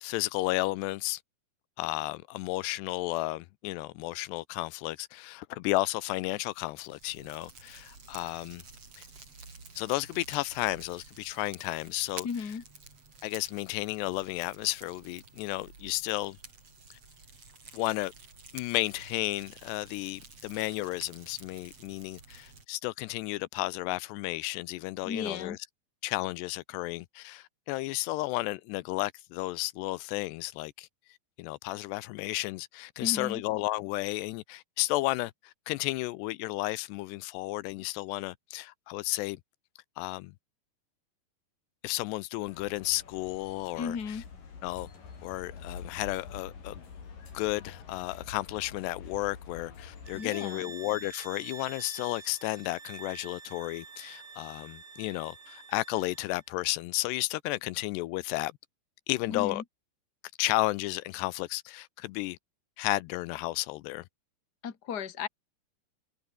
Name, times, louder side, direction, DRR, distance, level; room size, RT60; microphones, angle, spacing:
voice 1, 0.0-1.2 1.8-8.6 9.0-9.1 9.8-12.3 13.2-16.4 16.9-17.0 17.7-18.1 18.5-25.6 26.0-30.9 31.4-39.4 40.0-40.3 41.8-44.2 44.6-44.9 45.2-46.8 47.3-58.5 59.1-59.6 60.4-62.4 62.8-64.0, left 19 dB, 85° left, 2.8 m, -33 dB
Fire, 6.5-22.7, right 4 dB, 35° right, 6.6 m, -51 dB
voice 2, 12.2-12.6 25.0-25.6 33.0-33.4 43.8-44.2 50.1-50.7 59.3-59.6 64.6-65.3, left 6 dB, 30° left, 2.0 m, -35 dB
sound 1, 42.5-50.2, left 5 dB, 55° left, 6.1 m, -47 dB
sound 2, 50.0-56.4, right 5 dB, 80° right, 9.3 m, -47 dB
omnidirectional pair, 4.8 m